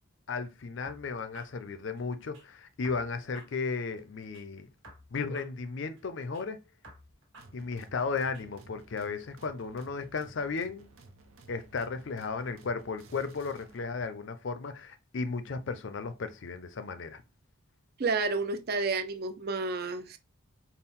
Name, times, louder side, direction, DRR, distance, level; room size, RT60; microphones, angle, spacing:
voice 1, 0.3-4.7 5.1-6.6 7.5-10.9 11.5-17.2, left 4 dB, 60° left, 0.5 m, -35 dB
sound 1, 0.8-2.4 2.8-4.4 4.8-6.4 6.8-8.4, right 1 dB, 70° right, 1.5 m, -55 dB
sound 2, 7.4-14.1, right 2 dB, 90° right, 0.7 m, -56 dB
voice 2, 18.0-20.2, right 3 dB, 45° right, 0.4 m, -30 dB
4.3 x 2.1 x 3.6 m
head